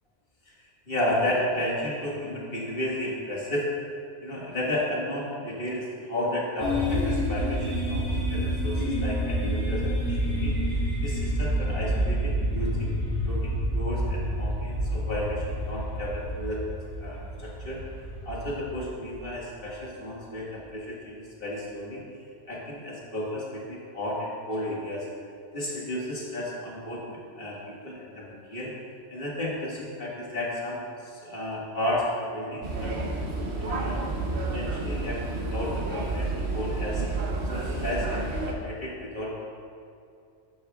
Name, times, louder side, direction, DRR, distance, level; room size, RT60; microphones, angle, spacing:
voice 1, 0.9-3.7 4.2-10.5 11.0-12.9 13.2-16.6 17.0-17.8 18.2-22.0 22.5-25.1 25.5-28.7 29.1-33.0 33.6-34.0 34.4-37.0 37.5-39.4, left 1 dB, 50° left, -5 dB, 2.0 m, -33 dB
sound 1, 6.6-19.5, equal, 15° left, 2.0 m, -28 dB
sound 2, 32.6-38.5, right 2 dB, 65° right, 1.2 m, -30 dB
12.5 x 7.6 x 2.4 m, 2.4 s
omnidirectional pair, 1.2 m